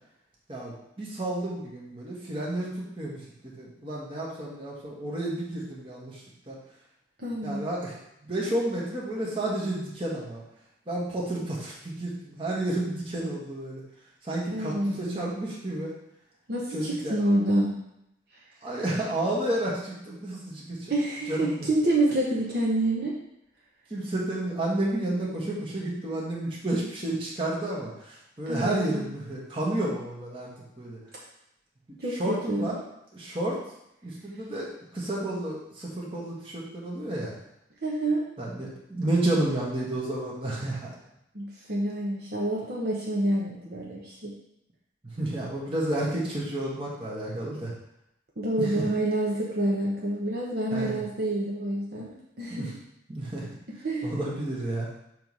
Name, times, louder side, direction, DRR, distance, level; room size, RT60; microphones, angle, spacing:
voice 1, 0.5-3.2 3.6-6.2 6.5-6.6 7.4-8.0 8.2-10.4 10.9-13.8 14.2-15.9 16.7-17.1 18.6-20.9 21.3-21.7 23.9-30.5 30.8-31.0 32.1-32.8 33.1-33.6 34.0-34.7 34.9-37.3 38.4-40.9 45.2-47.7 48.6-48.8 50.7-51.0 52.5-52.7 53.1-53.5 54.0-54.9, right 1 dB, 30° right, -5 dB, 1.5 m, -31 dB
voice 2, 7.2-7.6 14.5-15.3 16.5-17.8 20.9-23.2 28.5-29.1 32.0-32.8 37.8-38.2 41.3-44.3 48.4-52.7 53.8-54.1, right 1 dB, 55° right, -4 dB, 1.1 m, -28 dB
6.9 x 3.2 x 5.4 m, 0.80 s
head